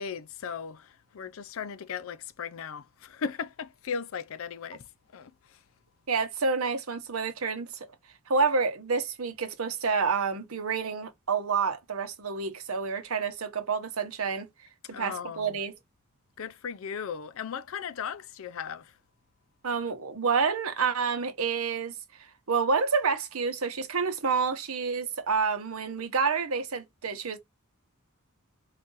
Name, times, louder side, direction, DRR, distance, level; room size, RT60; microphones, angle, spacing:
voice 1, 0.0-5.6 14.9-15.6 16.4-19.0, left 6 dB, 65° left, 0.5 m, -37 dB
voice 2, 6.1-7.9 8.3-14.5 15.0-15.7 19.6-27.4, right 5 dB, 80° right, 0.9 m, -28 dB
4.0 x 2.6 x 3.8 m
head